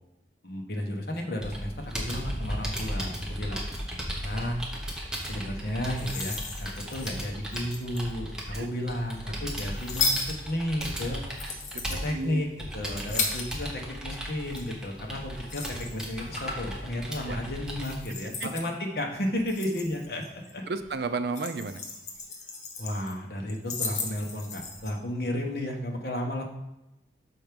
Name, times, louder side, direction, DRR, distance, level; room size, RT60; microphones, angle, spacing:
voice 1, 0.4-3.6 4.2-4.6 5.3-10.2 10.5-11.2 12.0-12.5 12.7-20.6 22.8-26.4, left 1 dB, 60° left, 2 dB, 1.1 m, -33 dB
Computer keyboard, 1.4-18.0, equal, 5° right, 1.0 m, -36 dB
sound 1, 5.7-8.3 8.9-13.9 14.2-16.8 17.1-17.4 17.8-18.7 19.2-20.5 20.8-23.1 23.5-24.9, left 4 dB, 45° left, 0.9 m, -35 dB
voice 2, 11.4-12.5 13.1-13.3 17.3-17.4 18.4-18.5 20.7-21.8, right 4 dB, 70° right, 9 dB, 0.5 m, -33 dB
6.3 x 4.6 x 5.2 m, 0.91 s
head